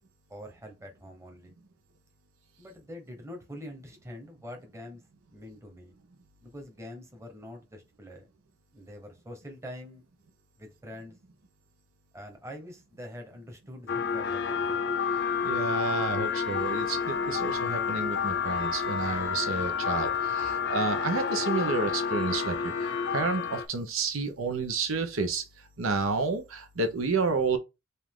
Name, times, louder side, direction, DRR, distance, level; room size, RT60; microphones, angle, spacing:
voice 1, 0.3-1.5 2.6-5.0 5.3-6.0 6.4-8.3 8.7-10.1 10.6-11.2 12.1-14.9, equal, 15° right, 1.1 m, -44 dB
sound 1, 13.9-23.7, left 6 dB, 60° left, 0.7 m, -29 dB
voice 2, 15.4-25.4 25.8-27.6, right 4 dB, 80° right, 0.8 m, -30 dB
5.3 x 2.5 x 3.6 m
head